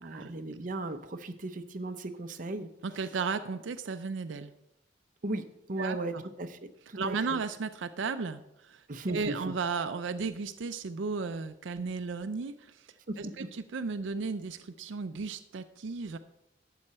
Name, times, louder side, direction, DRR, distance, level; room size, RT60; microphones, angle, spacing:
voice 1, 0.0-2.7 5.2-5.4 5.7-6.6 6.9-7.4 8.9-9.4, right 2 dB, 45° right, 7 dB, 0.7 m, -36 dB
voice 2, 2.8-4.5 5.8-6.2 6.9-12.9 13.2-16.2, right 4 dB, 80° right, 10 dB, 0.5 m, -35 dB
12.0 x 7.8 x 4.3 m, 0.86 s
head